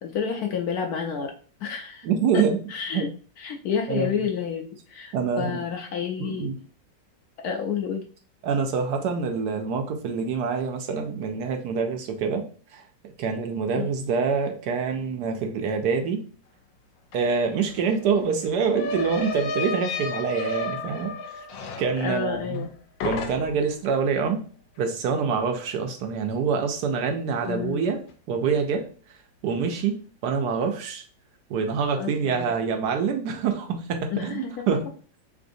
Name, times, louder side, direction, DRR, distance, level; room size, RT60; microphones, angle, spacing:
voice 1, 0.0-1.3 1.6-2.1 2.3-3.1 3.4-6.5 7.4-8.1 13.8-13.9 22.0-22.7 27.5-28.0 32.0-32.6 34.1-34.7, left 7 dB, 70° left, 3 dB, 0.9 m, -30 dB
voice 2, 2.0-2.6 2.9-3.1 3.9-4.1 5.1-5.6 6.3-6.6 8.4-16.3 17.1-21.4 21.8-22.7 23.0-24.4 24.8-28.0 28.3-28.9 29.4-31.0 31.5-34.8, right 5 dB, 70° right, 4 dB, 1.1 m, -26 dB
sound 1, 17.1-17.2 17.5-22.7 23.0-23.8, left 2 dB, 90° left, 1.3 m, -32 dB
3.7 x 3.3 x 2.6 m, 0.40 s
omnidirectional pair, 1.9 m